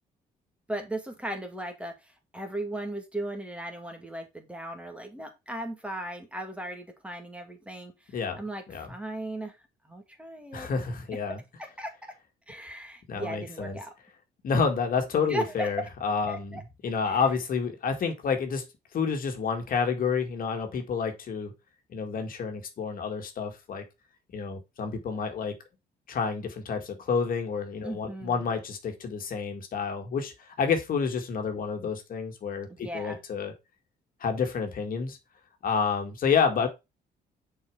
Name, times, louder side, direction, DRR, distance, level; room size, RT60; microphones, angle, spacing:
voice 1, 0.7-9.6 9.8-10.7 11.8-11.9 12.5-13.9 15.3-15.7 16.3-16.6 17.0-17.2 27.8-28.5 32.7-33.2, right 1 dB, 5° right, 2.1 m, -37 dB
voice 2, 10.5-11.4 13.1-13.8 14.4-18.7 18.9-21.5 21.9-23.8 24.3-25.5 26.1-33.5 34.2-35.2 35.6-36.7, left 5 dB, 60° left, 1.8 m, -29 dB
6.7 x 4.7 x 4.8 m
cardioid pair, 105°, 17 cm